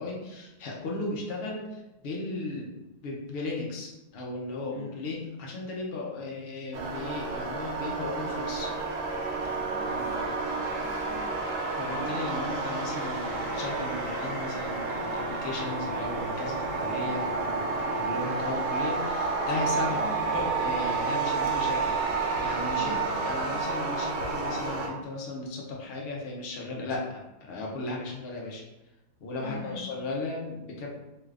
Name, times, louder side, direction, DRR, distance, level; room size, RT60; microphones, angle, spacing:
voice 1, 0.0-2.8 3.0-8.7 9.5-9.6 11.8-20.0 20.3-28.6 29.2-30.9, left 2 dB, 85° left, -2 dB, 0.5 m, -36 dB
voice 2, 4.7-5.1 9.4-11.2 19.9-20.1 22.7-23.5 29.4-29.8, left 1 dB, 55° left, -10 dB, 1.2 m, -44 dB
sound 1, 6.7-24.9, right 4 dB, 65° right, 0.8 m, -30 dB
3.1 x 2.4 x 3.3 m, 0.97 s
omnidirectional pair, 1.8 m